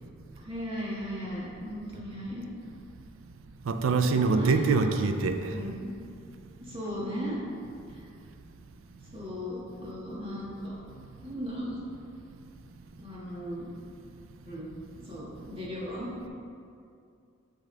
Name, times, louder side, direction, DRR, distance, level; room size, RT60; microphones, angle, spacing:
voice 1, 0.4-2.5 4.0-5.0 5.5-5.9 6.6-7.4 7.9-8.1 9.1-10.8 11.2-11.8 13.0-13.7 14.4-14.8 15.0-16.1, equal, 25° right, -7 dB, 1.6 m, -37 dB
voice 2, 3.7-5.4, right 4 dB, 80° right, 7 dB, 0.4 m, -24 dB
7.1 x 6.3 x 3.3 m, 2.4 s
head